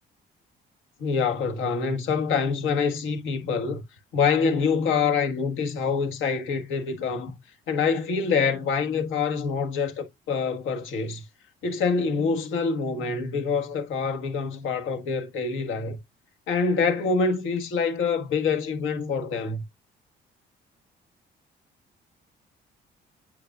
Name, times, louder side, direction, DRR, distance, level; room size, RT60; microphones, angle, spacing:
voice 1, 1.0-3.8 4.1-7.3 7.7-11.2 11.6-16.0 16.5-19.6, left 5 dB, 85° left, 1.5 m, -26 dB
8.6 x 5.8 x 2.3 m
cardioid pair, 90°, 20 cm